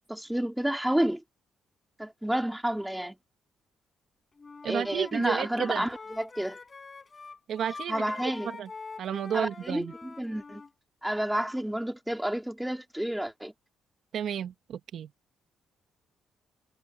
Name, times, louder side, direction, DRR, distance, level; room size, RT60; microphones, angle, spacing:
voice 1, 0.1-1.2 2.0-3.2 4.7-6.6 7.9-8.5 9.3-10.6 11.0-13.5, right 1 dB, 5° right, 4.4 m, -30 dB
Wind instrument woodwind instrument, 4.4-10.7, left 4 dB, 30° left, 7.0 m, -45 dB
voice 2, 4.6-5.9 7.5-8.0 8.4-8.7 9.0-9.9 14.1-15.1, right 9 dB, 70° right, 1.9 m, -32 dB
cardioid pair, 90°, 0 cm